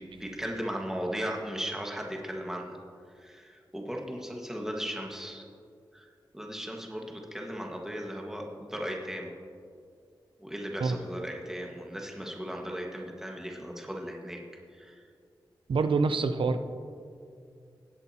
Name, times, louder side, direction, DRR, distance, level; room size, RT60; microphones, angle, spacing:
voice 1, 0.0-2.8 3.1-5.4 5.9-6.1 6.3-9.3 10.4-14.4 14.7-15.0, equal, 5° right, 0 dB, 1.6 m, -37 dB
voice 2, 15.7-16.6, right 4 dB, 85° right, 9 dB, 0.6 m, -26 dB
18.0 x 8.0 x 2.9 m, 2.3 s
cardioid pair, 55°, 9 cm